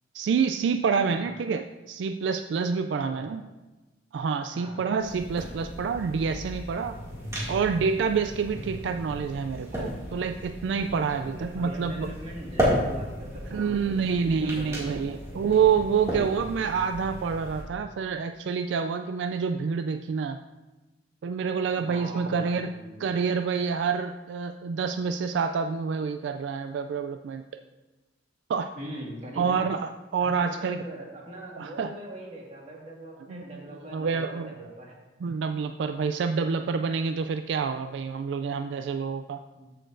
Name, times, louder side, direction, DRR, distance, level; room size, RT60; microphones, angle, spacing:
voice 1, 0.1-3.4 4.1-7.0 7.5-12.1 13.5-20.4 21.2-22.7 23.0-27.4 28.5-28.7 29.4-30.8 31.6-31.9 33.3-33.4 33.9-34.5 35.2-39.4, right 6 dB, 70° right, 8 dB, 0.3 m, -27 dB
voice 2, 2.9-3.3 4.5-4.8 11.0-14.1 14.4-15.2 21.8-23.0 28.7-29.7 30.2-35.0 39.5-39.8, right 1 dB, 35° right, -3 dB, 1.9 m, -42 dB
sound 1, 5.0-16.5, left 1 dB, 50° left, 1.0 m, -44 dB
sound 2, 5.0-17.6, equal, 15° right, 2.2 m, -34 dB
13.5 x 6.6 x 2.6 m, 1.1 s
head